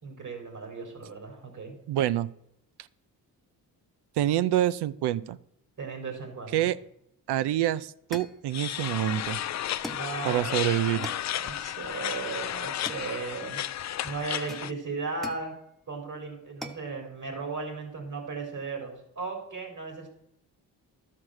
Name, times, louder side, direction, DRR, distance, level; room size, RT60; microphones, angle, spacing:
voice 1, 0.0-1.8 5.8-6.7 9.9-13.6 14.0-15.5 15.9-20.1, right 4 dB, 50° right, 3 dB, 3.9 m, -36 dB
voice 2, 1.9-2.3 4.2-5.4 6.5-6.8 7.3-9.4 10.2-11.1, right 12 dB, 75° right, 17 dB, 0.6 m, -26 dB
sound 1, 8.1-8.5 9.8-10.2 11.0-11.3 12.8-13.5 14.5-15.5 16.6-16.9, left 1 dB, ahead, 1.1 m, -42 dB
sound 2, 8.5-14.7, left 11 dB, 45° left, 0.4 m, -33 dB
12.0 x 5.9 x 6.4 m, 0.78 s
supercardioid pair, 60°, 40 cm